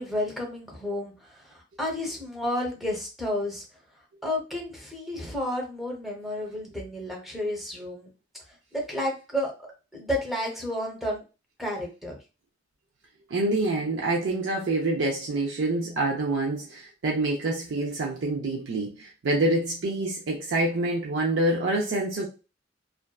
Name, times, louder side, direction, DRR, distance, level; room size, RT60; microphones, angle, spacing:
voice 1, 0.0-3.6 4.2-8.1 8.5-9.5 9.9-11.2 11.6-12.2, left 1 dB, ahead, 0.6 m, -31 dB
voice 2, 13.3-22.3, right 2 dB, 80° right, 0.5 m, -26 dB
2.5 x 2.2 x 2.2 m
head